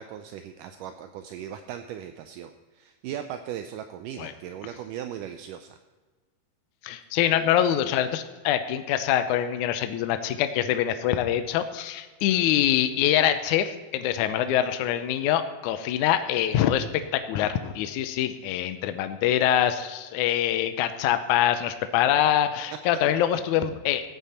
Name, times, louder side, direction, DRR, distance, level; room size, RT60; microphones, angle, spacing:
voice 1, 0.0-5.8, right 10 dB, 80° right, 8 dB, 1.9 m, -38 dB
voice 2, 6.8-24.1, left 11 dB, 85° left, 8 dB, 1.8 m, -24 dB
15.0 x 9.5 x 4.3 m, 1.3 s
omnidirectional pair, 4.3 m